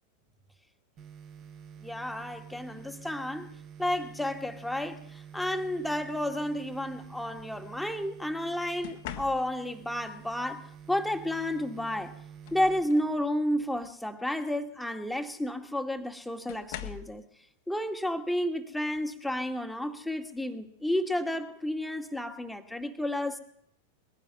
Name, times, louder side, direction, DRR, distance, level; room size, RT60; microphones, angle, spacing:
sound 1, 1.0-13.9, right 7 dB, 40° right, 3.0 m, -49 dB
voice 1, 1.8-3.5 3.8-12.1 12.5-17.2 17.7-23.4, left 1 dB, 5° left, 5 dB, 2.1 m, -31 dB
sound 2, 3.9-4.2 5.5-5.8 8.8-9.8 11.6-11.7 12.1-13.2 13.7-14.0 15.3-15.4 16.5-17.2 18.9-19.1 19.6-19.9, left 12 dB, 50° left, 1.6 m, -44 dB
22.0 x 16.0 x 7.8 m, 0.68 s
figure-of-eight pair, 90°, 0 cm